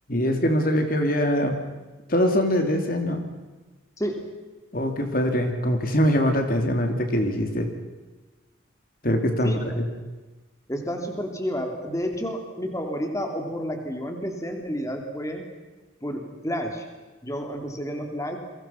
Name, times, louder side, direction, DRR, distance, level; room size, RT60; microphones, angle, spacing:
voice 1, 0.1-1.6 2.1-3.3 4.7-7.7 9.0-9.8, equal, 45° left, 5 dB, 3.0 m, -23 dB
voice 2, 4.0-4.3 9.4-9.6 10.7-15.4 16.0-16.9 17.2-18.4, equal, 15° left, 4 dB, 3.0 m, -30 dB
29.5 x 23.5 x 5.9 m, 1.2 s
head